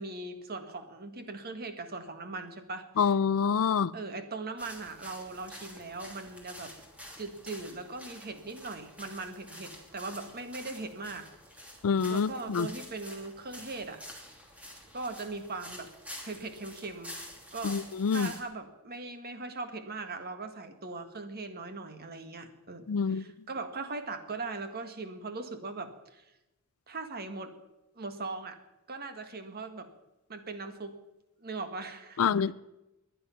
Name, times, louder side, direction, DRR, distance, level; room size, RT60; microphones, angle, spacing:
voice 1, 0.0-2.8 3.9-6.7 7.2-11.3 12.1-14.0 14.9-15.9 16.2-17.1 17.5-17.8 18.1-26.2 26.9-27.5 27.9-28.6 28.9-29.9 30.3-31.0 31.4-32.4, right 3 dB, 45° right, 1.6 m, -40 dB
voice 2, 3.0-3.9 11.8-12.7 17.6-18.3 22.9-23.2 32.2-32.5, left 6 dB, 70° left, 0.4 m, -26 dB
sound 1, 4.6-18.4, equal, 5° right, 2.6 m, -48 dB
20.5 x 10.0 x 5.8 m
head